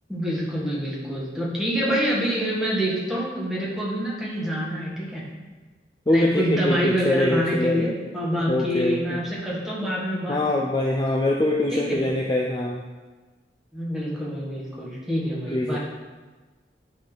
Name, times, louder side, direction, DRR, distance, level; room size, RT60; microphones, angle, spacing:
voice 1, 0.1-5.2 6.1-10.4 11.7-12.0 13.7-15.8, equal, ahead, -6 dB, 1.7 m, -26 dB
voice 2, 6.1-7.8 8.5-9.2 10.3-12.8 15.5-15.8, left 1 dB, 25° left, -1 dB, 0.5 m, -24 dB
11.0 x 4.1 x 4.0 m, 1.3 s
head